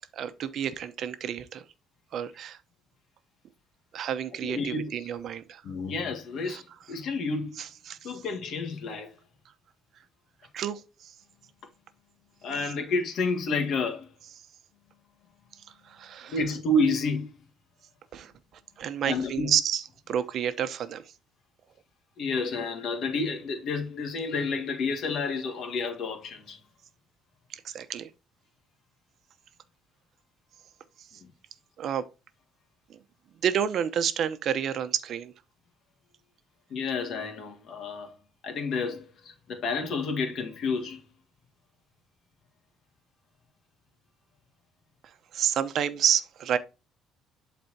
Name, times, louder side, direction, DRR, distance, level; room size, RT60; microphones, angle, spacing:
voice 1, 0.1-1.6 2.1-2.6 3.9-5.6 6.5-6.6 7.9-8.1 10.5-11.1 15.8-16.3 18.1-18.3 18.8-21.0 27.5-28.1 31.8-32.1 33.4-35.3 45.3-46.6, right 9 dB, 55° right, 0.9 m, -29 dB
voice 2, 4.4-5.0 5.6-7.5 8.0-9.1 12.4-14.1 16.3-17.4 19.0-19.5 22.2-26.6 31.2-31.3 36.7-38.1 38.4-41.0, left 3 dB, 60° left, 1.7 m, -30 dB
11.5 x 4.3 x 2.9 m
cardioid pair, 120°, 0 cm